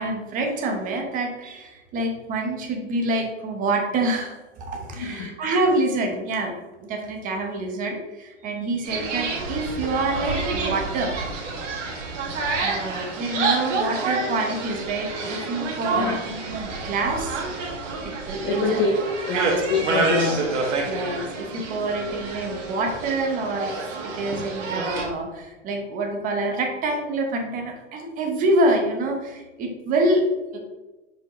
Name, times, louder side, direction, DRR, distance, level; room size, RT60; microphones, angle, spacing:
voice 1, 0.0-6.5 6.8-11.1 11.4-11.6 12.6-17.4 18.0-18.8 19.3-19.6 20.8-23.7 24.0-30.2 30.5-30.6, right 2 dB, 20° right, 2 dB, 0.9 m, -26 dB
voice 2, 4.9-5.3 15.9-16.2 18.4-18.9 19.3-20.6, left 4 dB, 20° left, 1 dB, 0.3 m, -26 dB
sound 1, 8.8-25.1, right 3 dB, 75° right, 1.8 m, -28 dB
6.4 x 5.1 x 3.1 m, 1.1 s
hypercardioid pair, 150°, 37 cm